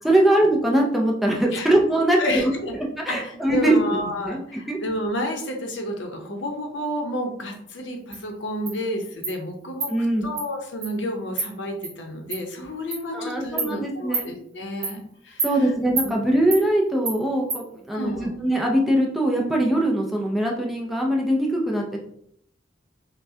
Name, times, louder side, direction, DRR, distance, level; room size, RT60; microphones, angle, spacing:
voice 1, 0.0-2.2 3.1-4.8 9.9-10.3 13.1-14.3 15.4-22.0, right 1 dB, ahead, -1 dB, 0.5 m, -22 dB
voice 2, 2.2-2.7 3.1-9.9 10.2-15.5 16.0-16.3 17.9-18.3, left 1 dB, 65° left, 3 dB, 0.8 m, -30 dB
Insect, 8.1-8.2 8.7-8.8 9.2-9.4 9.8-9.9 10.4-10.5 10.8-10.9 11.4-11.5 11.8-11.9 12.3-12.4 12.9-13.0 13.6-13.7 14.1-14.3 14.8-15.0 15.4-15.5 16.0-16.1 16.5-16.6 17.1-17.2 17.5-17.6, right 4 dB, 35° right, 1.0 m, -27 dB
5.5 x 2.2 x 2.7 m, 0.68 s
head